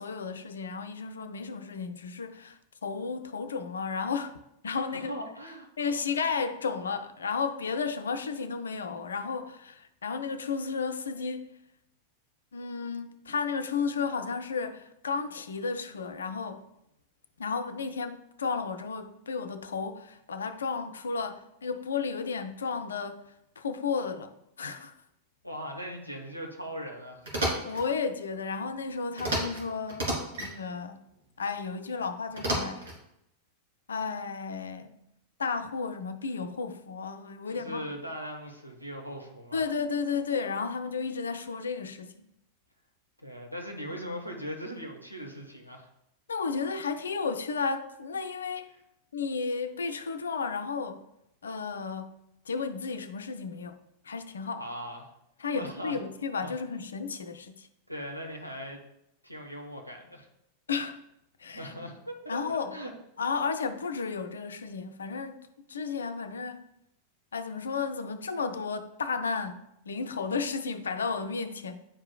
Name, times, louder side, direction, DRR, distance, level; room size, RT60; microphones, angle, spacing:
voice 1, 0.0-4.4 4.6-5.1 5.8-11.5 12.5-16.7 17.4-24.9 27.6-31.0 31.4-32.9 33.9-35.0 35.4-37.9 39.5-42.1 46.3-48.7 49.1-51.0 51.4-52.2 52.5-53.8 54.0-54.6 55.4-57.7 60.7-61.0 61.4-61.7 62.3-62.8 63.2-66.6 67.3-71.7, left 5 dB, 70° left, 0.5 m, -33 dB
voice 2, 4.9-5.7 25.4-27.3 37.5-39.6 43.2-45.9 54.5-55.1 55.5-56.0 56.4-56.6 57.9-58.8 59.2-60.3 61.5-62.9, equal, 90° right, 1.1 m, -39 dB
sound 1, 27.2-27.8 29.2-29.6 29.9-30.5 32.4-33.0, right 1 dB, 60° right, 2.4 m, -30 dB
9.6 x 4.8 x 2.3 m
figure-of-eight pair, 90°, 0 cm